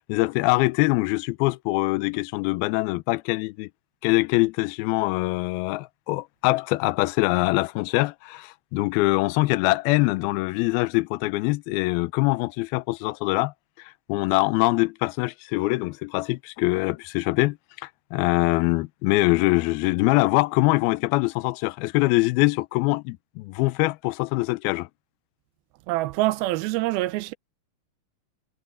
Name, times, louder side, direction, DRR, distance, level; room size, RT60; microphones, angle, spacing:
voice 1, 0.1-3.7 4.0-24.9, left 21 dB, 85° left, 2.5 m, -23 dB
voice 2, 25.9-27.3, right 18 dB, 85° right, 2.5 m, -25 dB
omnidirectional pair, 4.4 m